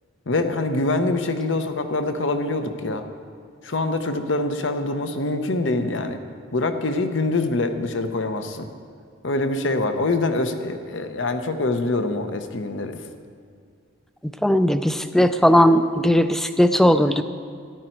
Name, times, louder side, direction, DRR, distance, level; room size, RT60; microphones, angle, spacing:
voice 1, 0.3-3.0 3.6-6.2 6.5-8.7 9.2-13.0, left 2 dB, 65° left, 8 dB, 0.8 m, -24 dB
voice 2, 14.4-17.2, equal, ahead, 10 dB, 0.3 m, -17 dB
13.5 x 11.0 x 4.5 m, 2.2 s
head